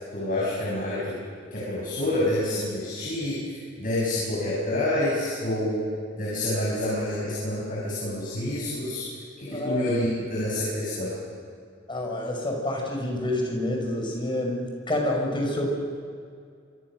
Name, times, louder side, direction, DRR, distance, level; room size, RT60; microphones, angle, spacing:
voice 1, 0.1-1.2 1.5-5.8 6.2-9.1 9.4-11.1, left 1 dB, 45° left, -6 dB, 7.7 m, -28 dB
voice 2, 9.5-9.9 11.9-15.8, left 1 dB, 25° left, 0 dB, 6.1 m, -28 dB
27.0 x 25.0 x 6.5 m, 2.2 s
head